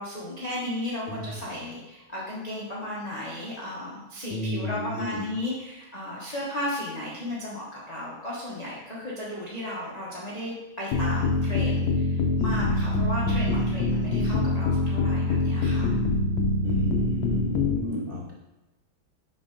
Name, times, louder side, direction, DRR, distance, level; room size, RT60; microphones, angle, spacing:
voice 1, 0.0-15.9, left 1 dB, 30° left, -6 dB, 0.7 m, -35 dB
voice 2, 4.3-5.3 16.6-18.3, left 2 dB, 65° left, -3 dB, 0.5 m, -32 dB
sound 1, 10.9-17.8, left 2 dB, 80° left, 1.5 m, -24 dB
5.9 x 5.3 x 3.8 m, 1.1 s
omnidirectional pair, 2.3 m